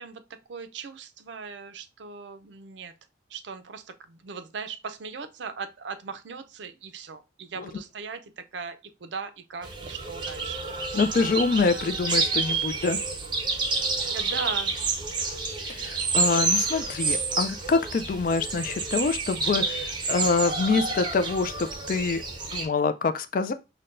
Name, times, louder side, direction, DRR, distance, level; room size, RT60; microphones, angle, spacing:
voice 1, 0.0-2.9 3.3-10.7 14.1-14.8, right 5 dB, 80° right, 0.5 m, -38 dB
sound 1, 9.6-22.6, right 4 dB, 25° right, 0.6 m, -29 dB
voice 2, 10.9-13.0 15.6-22.2 22.5-23.5, left 4 dB, 45° left, 0.3 m, -26 dB
5.7 x 2.2 x 2.5 m
head